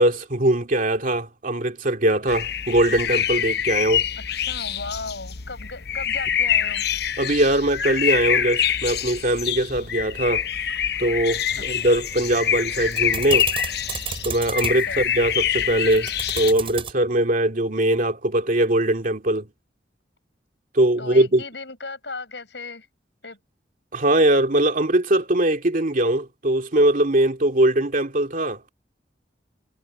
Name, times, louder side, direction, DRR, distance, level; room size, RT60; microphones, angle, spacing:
voice 1, 0.0-4.0 7.2-10.4 11.0-13.5 14.2-16.1 16.3-19.5 20.7-21.4 23.9-28.7, right 1 dB, 50° right, 2.5 m, -21 dB
sound 1, 2.3-16.5, left 9 dB, 65° left, 0.9 m, -25 dB
voice 2, 4.5-6.8 11.6-11.7 14.7-15.0 21.0-22.9 23.2-23.4, left 3 dB, 85° left, 6.8 m, -36 dB
sound 2, 11.5-16.9, right 5 dB, 30° right, 6.2 m, -35 dB
head